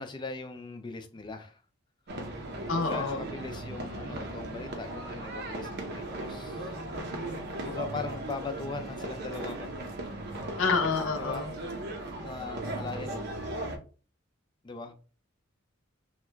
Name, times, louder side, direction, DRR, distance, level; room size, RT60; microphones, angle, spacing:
voice 1, 0.0-1.6 2.7-6.8 7.6-9.7 11.2-11.5 12.0-13.3 14.6-14.9, left 3 dB, 20° left, 0.4 m, -39 dB
sound 1, 2.1-13.8, right 1 dB, 55° right, 0.6 m, -37 dB
voice 2, 2.7-3.2 10.6-11.5, left 4 dB, 70° left, 0.6 m, -28 dB
2.9 x 2.2 x 3.3 m
head